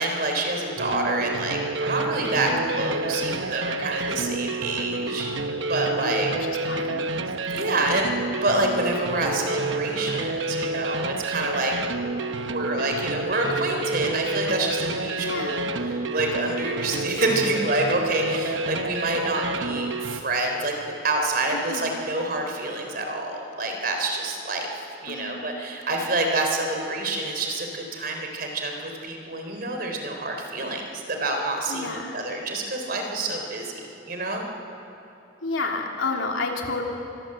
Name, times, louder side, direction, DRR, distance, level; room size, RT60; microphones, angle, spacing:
voice 1, 0.0-5.3 5.6-6.3 7.5-11.7 12.5-34.4, right 2 dB, 50° right, 3 dB, 3.8 m, -27 dB
sound 1, 0.8-20.2, right 2 dB, 65° right, 1.0 m, -29 dB
voice 2, 2.3-2.7 6.0-7.1 15.2-15.7 21.5-22.0 25.1-25.4 31.7-32.3 35.4-36.8, left 3 dB, 80° left, 1 dB, 3.2 m, -31 dB
25.5 x 22.0 x 7.9 m, 2.7 s
head